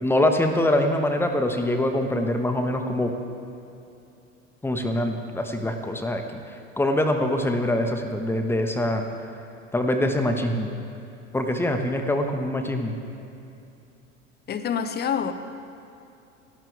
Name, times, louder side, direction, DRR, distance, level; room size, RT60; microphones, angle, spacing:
voice 1, 0.0-3.1 4.6-6.4 6.8-9.0 9.7-10.7 11.3-12.9, left 1 dB, 5° left, 5 dB, 1.4 m, -24 dB
voice 2, 14.5-15.3, left 7 dB, 25° left, 10 dB, 0.9 m, -26 dB
28.5 x 12.0 x 3.5 m, 2.7 s
figure-of-eight pair, 80°, 40 cm